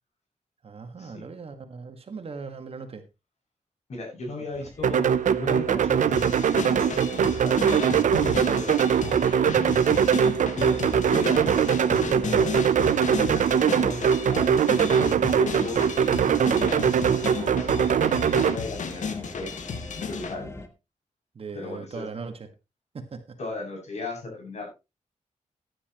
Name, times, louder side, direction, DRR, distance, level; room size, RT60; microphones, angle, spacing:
voice 1, 0.6-3.1 4.6-4.7 12.2-12.5 13.3-13.7 21.3-22.5 22.9-23.4, right 4 dB, 50° right, 7 dB, 1.8 m, -39 dB
voice 2, 3.9-9.3 9.9-12.6 13.0-14.9 15.3-19.5 19.9-20.6 21.5-22.0 23.4-24.7, left 2 dB, 65° left, 0 dB, 7.5 m, -37 dB
sound 1, 4.5-20.7, left 2 dB, 20° left, 1.6 m, -45 dB
sound 2, 4.8-18.5, right 8 dB, 90° right, 0.8 m, -22 dB
sound 3, 6.1-20.3, left 5 dB, 90° left, 1.7 m, -34 dB
15.5 x 10.0 x 3.1 m, 0.26 s
wide cardioid pair, 145°, 13 cm